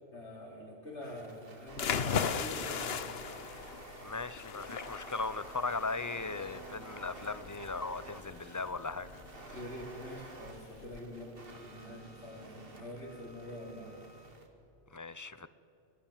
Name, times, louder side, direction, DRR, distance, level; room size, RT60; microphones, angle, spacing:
voice 1, 0.1-3.1 9.5-14.0, left 1 dB, 85° left, 4.1 m, -45 dB
sound 1, 1.0-14.5, right 2 dB, 55° right, 2.3 m, -51 dB
sound 2, 1.7-11.0, left 6 dB, 65° left, 1.1 m, -38 dB
voice 2, 4.0-9.2 9.5-9.6 14.9-15.5, left 3 dB, 20° left, 0.5 m, -38 dB
26.5 x 18.5 x 7.4 m
omnidirectional pair, 1.1 m